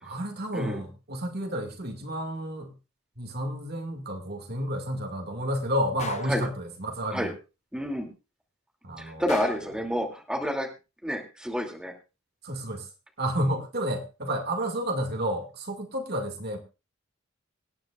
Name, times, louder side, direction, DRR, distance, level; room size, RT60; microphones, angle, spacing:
voice 1, 0.0-2.7 3.2-7.3 8.8-9.7 12.4-12.9 13.2-16.6, equal, 50° right, 4 dB, 2.2 m, -31 dB
Gunshot gunfire, 6.0-6.4 9.3-9.8, left 5 dB, 35° left, 0.8 m, -38 dB
voice 2, 7.7-8.1 9.0-10.7 11.0-11.9, equal, 5° right, 1 dB, 2.6 m, -29 dB
25.5 x 9.5 x 2.4 m, 0.29 s
head